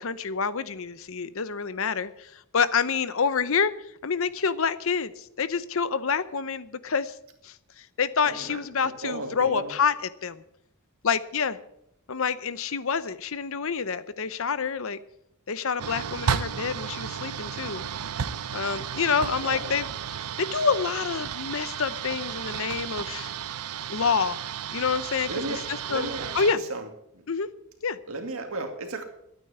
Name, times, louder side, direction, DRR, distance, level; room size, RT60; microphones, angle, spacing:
voice 1, 0.0-3.7 4.0-7.1 7.4-10.4 11.0-11.6 12.1-15.0 15.5-17.8 18.5-19.9 20.2-23.3 23.9-24.4 24.7-26.6 27.3-27.5 27.8-28.0, left 5 dB, 65° left, 15 dB, 0.8 m, -27 dB
voice 2, 8.2-9.7 19.1-19.8 25.3-25.6 25.9-26.3 26.7-26.8 28.1-29.0, right 2 dB, 65° right, 5 dB, 2.3 m, -34 dB
sound 1, 15.8-26.5, right 8 dB, 90° right, 0.7 m, -33 dB
12.5 x 9.3 x 8.0 m, 0.78 s
head